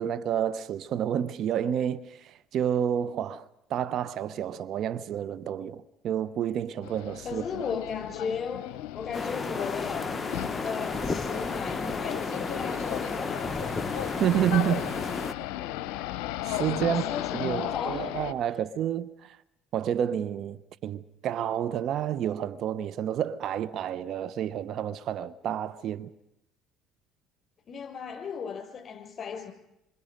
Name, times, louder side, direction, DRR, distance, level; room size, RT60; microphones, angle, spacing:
voice 1, 0.0-3.4 3.7-7.6 14.2-14.8 16.4-19.4 19.7-26.1, right 10 dB, 60° right, 0.9 m, -30 dB
sound 1, 6.8-18.3, left 14 dB, 75° left, 0.7 m, -36 dB
voice 2, 7.2-10.1 10.4-13.8 16.8-18.1 27.7-29.5, left 6 dB, 45° left, 6.4 m, -36 dB
sound 2, 9.1-15.3, left 3 dB, 20° left, 1.2 m, -33 dB
26.5 x 26.0 x 5.3 m
supercardioid pair, 75°, 0 cm